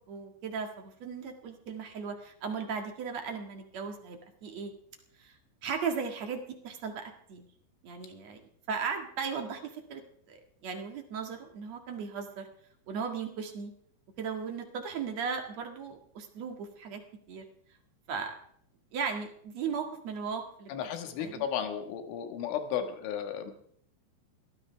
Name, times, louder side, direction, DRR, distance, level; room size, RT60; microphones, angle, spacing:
voice 1, 0.0-4.7 5.2-7.5 7.8-8.4 8.7-10.0 10.3-12.5 12.9-13.7 14.2-17.0 17.3-17.5 18.1-18.4 18.9-20.7 21.2-21.5, right 6 dB, 55° right, 4 dB, 2.1 m, -37 dB
voice 2, 20.7-23.5, left 8 dB, 80° left, 6 dB, 4.1 m, -34 dB
21.5 x 16.5 x 3.4 m, 0.66 s
omnidirectional pair, 5.5 m